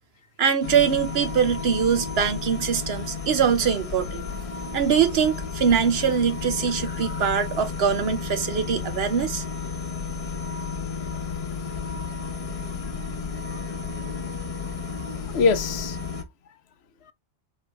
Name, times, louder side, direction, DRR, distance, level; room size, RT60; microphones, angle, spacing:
voice 1, 0.4-4.2 4.7-9.4, right 7 dB, 70° right, 1.0 m, -23 dB
hum in garage close, 0.6-16.2, left 5 dB, 35° left, 0.9 m, -33 dB
voice 2, 6.8-7.2 13.5-13.7 14.6-16.0 17.1-17.2, left 4 dB, 75° left, 0.9 m, -27 dB
4.7 x 3.0 x 3.4 m
omnidirectional pair, 1.1 m